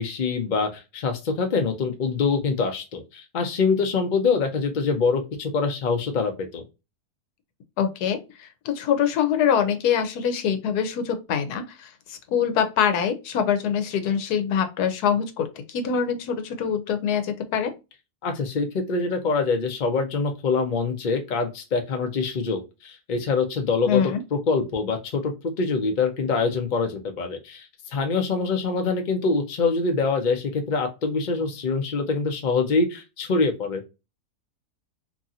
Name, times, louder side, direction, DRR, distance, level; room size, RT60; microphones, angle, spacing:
voice 1, 0.0-6.6 18.2-24.0 24.3-33.8, left 4 dB, 55° left, 4 dB, 0.5 m, -25 dB
voice 2, 7.8-17.7 23.9-24.2, left 8 dB, 90° left, 8 dB, 1.2 m, -24 dB
2.9 x 2.7 x 2.3 m, 0.27 s
omnidirectional pair, 1.6 m